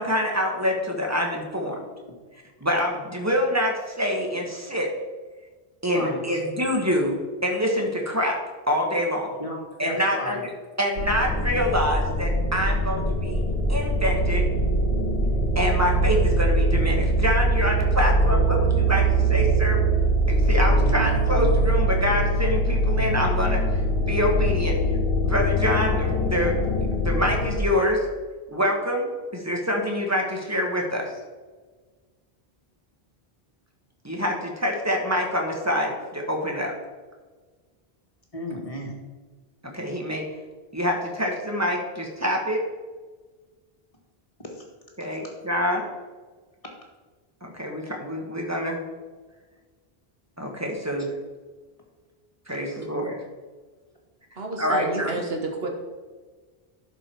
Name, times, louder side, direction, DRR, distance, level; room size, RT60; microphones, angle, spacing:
voice 1, 0.0-1.8 2.6-4.9 5.8-8.4 8.7-9.3 9.8-10.4 10.8-13.4 13.7-14.4 15.5-19.8 20.3-24.8 25.2-26.5 26.9-28.1 28.5-31.1 34.0-36.7 39.7-40.2 40.7-42.6 45.0-45.8 47.4-48.8 50.4-51.1 52.5-53.2 54.6-55.1, equal, 15° right, 1 dB, 1.6 m, -26 dB
voice 2, 5.9-6.4 9.4-10.4 20.8-21.6 38.3-38.9 44.5-44.6 52.5-52.6, equal, 35° left, -1 dB, 1.8 m, -34 dB
sound 1, 11.0-27.6, right 1 dB, 80° left, 1.5 m, -22 dB
voice 3, 54.3-55.7, right 2 dB, 75° right, 2 dB, 1.6 m, -30 dB
11.5 x 5.2 x 4.6 m, 1.4 s
omnidirectional pair, 1.0 m